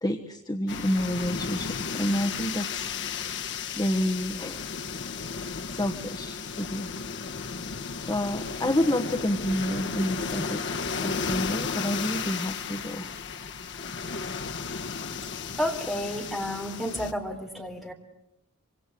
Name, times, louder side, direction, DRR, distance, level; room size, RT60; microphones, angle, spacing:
voice 1, 0.0-2.9 3.8-4.7 5.7-6.9 8.1-13.1, equal, 20° left, 5 dB, 1.3 m, -29 dB
sound 1, 0.7-17.1, left 5 dB, 55° left, 1.1 m, -34 dB
voice 2, 15.6-17.9, equal, ahead, 2 dB, 3.7 m, -31 dB
26.0 x 25.5 x 8.4 m, 0.81 s
head